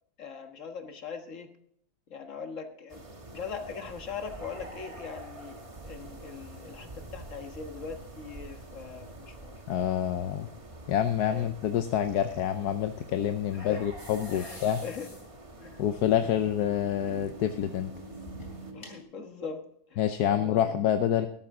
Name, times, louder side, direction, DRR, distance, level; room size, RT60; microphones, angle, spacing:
voice 1, 0.2-1.5 2.1-3.0 3.3-9.5 11.3-11.5 13.6-13.8 14.3-15.1 15.6-15.8 18.7-19.6 19.9-20.0 20.3-20.7, left 5 dB, 55° left, 6 dB, 1.8 m, -41 dB
sound 1, 2.9-18.7, right 2 dB, 20° right, 1.3 m, -47 dB
voice 2, 9.7-10.5 10.9-14.8 15.8-17.9 20.0-21.3, left 10 dB, 90° left, 8 dB, 1.3 m, -27 dB
sound 2, 14.0-19.0, equal, 30° left, 4.4 m, -46 dB
13.0 x 12.0 x 3.7 m, 0.67 s
omnidirectional pair, 1.6 m